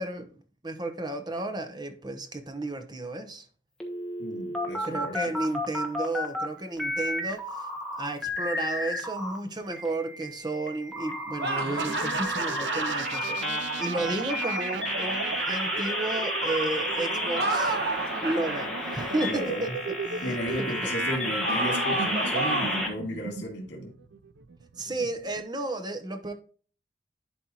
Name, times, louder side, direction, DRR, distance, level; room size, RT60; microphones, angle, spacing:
voice 1, 0.0-3.5 4.8-7.7 8.0-17.8 18.2-20.9 24.8-26.3, right 2 dB, 25° right, 0.8 m, -33 dB
sound 1, 3.8-6.5 6.8-9.4 9.7-22.9, left 1 dB, 5° left, 1.2 m, -32 dB
voice 2, 4.2-5.3 19.3-19.8 20.2-23.9, equal, 85° left, 2.1 m, -34 dB
sound 2, 11.4-13.1 17.2-18.6 21.4-22.9, right 2 dB, 65° right, 1.6 m, -30 dB
sound 3, 11.8-25.4, right 5 dB, 85° right, 0.5 m, -35 dB
11.0 x 4.3 x 2.9 m
head